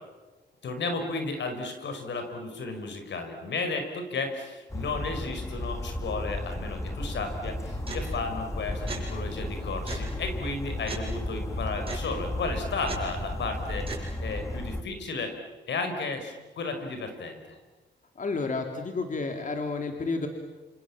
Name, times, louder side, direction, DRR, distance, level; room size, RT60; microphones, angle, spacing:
voice 1, 0.6-13.9 14.2-15.3 15.7-17.6, left 3 dB, 75° left, 6 dB, 5.3 m, -33 dB
Bird vocalization bird call bird song, 4.7-14.8, left 1 dB, 15° left, 2.4 m, -34 dB
sound 1, 7.4-14.1, right 2 dB, 30° right, 7.8 m, -40 dB
voice 2, 18.2-20.3, left 3 dB, 45° left, 4 dB, 3.0 m, -31 dB
28.5 x 27.0 x 7.4 m, 1.2 s
cardioid pair, 95°, 19 cm